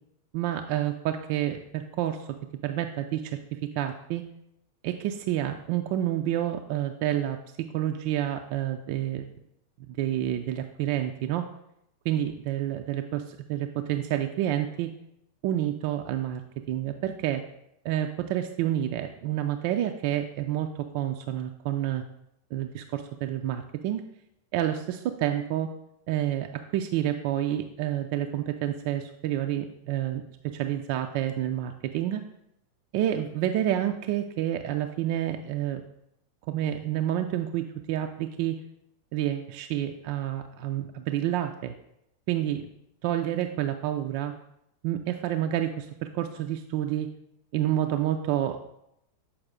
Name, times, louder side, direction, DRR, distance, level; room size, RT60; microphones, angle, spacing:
voice 1, 0.3-2.3 2.6-4.2 4.8-9.3 9.9-11.5 12.0-14.9 15.4-16.4 16.7-17.4 17.8-22.0 22.5-24.0 24.5-25.7 26.1-32.2 32.9-35.8 36.5-38.6 39.1-41.7 42.3-42.6 43.0-44.3 44.8-47.1 47.5-48.6, right 12 dB, 45° right, 5 dB, 0.4 m, -29 dB
7.2 x 4.6 x 3.6 m, 0.79 s
figure-of-eight pair, 90°, 0 cm